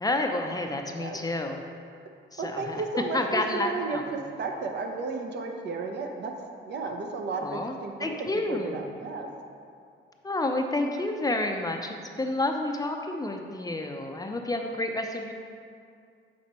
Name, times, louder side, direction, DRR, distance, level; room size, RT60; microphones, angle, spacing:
voice 1, 0.0-1.6 2.3-2.8 3.1-4.0 7.4-7.7 8.0-9.0 10.2-15.3, left 2 dB, 20° left, 3 dB, 0.5 m, -30 dB
voice 2, 2.4-6.3 6.6-8.1 8.5-9.3, right 4 dB, 60° right, 3 dB, 0.8 m, -33 dB
7.4 x 4.2 x 4.3 m, 2.3 s
cardioid pair, 90°, 20 cm